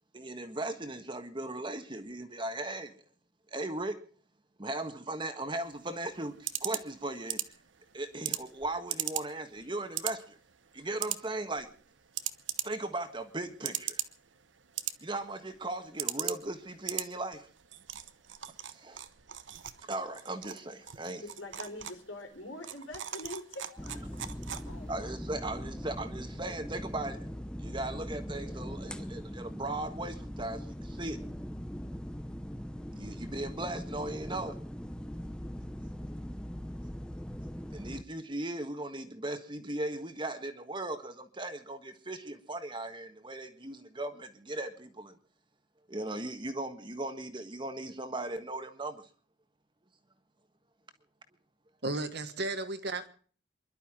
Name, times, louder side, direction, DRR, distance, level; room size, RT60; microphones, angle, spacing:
voice 1, 0.1-3.0 3.5-4.0 4.6-7.4 7.9-10.4 10.7-11.7 12.6-14.0 15.0-17.5 18.7-19.0 19.9-21.2 24.9-27.3 27.6-31.2 33.0-34.6 37.7-45.2 45.9-49.0, right 2 dB, 25° right, 1.5 m, -37 dB
sound 1, 5.6-25.0, right 12 dB, 75° right, 0.9 m, -40 dB
voice 2, 21.2-24.1 24.5-25.1, left 1 dB, 85° left, 4.3 m, -44 dB
sound 2, 23.8-38.0, equal, 5° left, 0.7 m, -41 dB
voice 3, 51.8-53.1, right 2 dB, 55° right, 1.6 m, -34 dB
28.0 x 11.5 x 3.8 m
head